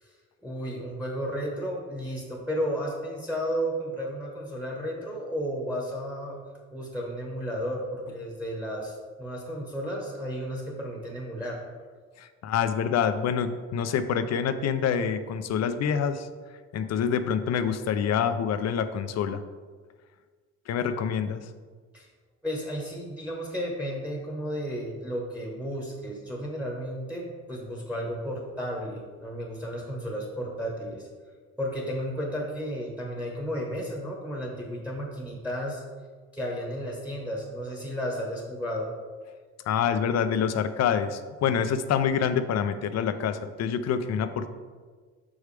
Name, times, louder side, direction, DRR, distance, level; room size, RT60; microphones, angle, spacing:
voice 1, 0.4-6.4 6.7-11.6 16.9-17.0 21.9-22.1 22.4-31.1 31.6-35.8 36.3-38.9, equal, 5° right, -2 dB, 1.3 m, -33 dB
voice 2, 12.2-16.3 16.7-19.4 20.7-21.5 39.7-44.5, left 7 dB, 60° left, 10 dB, 0.5 m, -26 dB
6.2 x 4.8 x 3.4 m, 1.5 s
cardioid pair, 90°, 30 cm